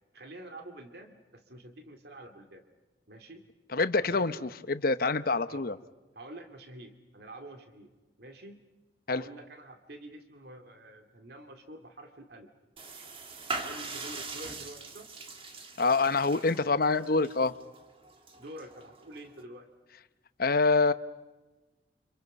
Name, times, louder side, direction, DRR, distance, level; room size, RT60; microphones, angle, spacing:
voice 1, 0.1-2.6 3.1-3.5 4.0-4.5 5.5-5.6 6.2-7.9 8.2-8.6 9.1-12.5 13.5-15.1 18.4-19.7, right 1 dB, 65° right, 6 dB, 2.4 m, -47 dB
voice 2, 3.7-5.8 9.1-9.2 15.8-17.5 20.4-20.9, left 3 dB, 60° left, 12 dB, 1.0 m, -26 dB
sound 1, 12.8-19.4, right 3 dB, 30° right, 1.9 m, -42 dB
30.0 x 27.0 x 5.4 m, 1.2 s
head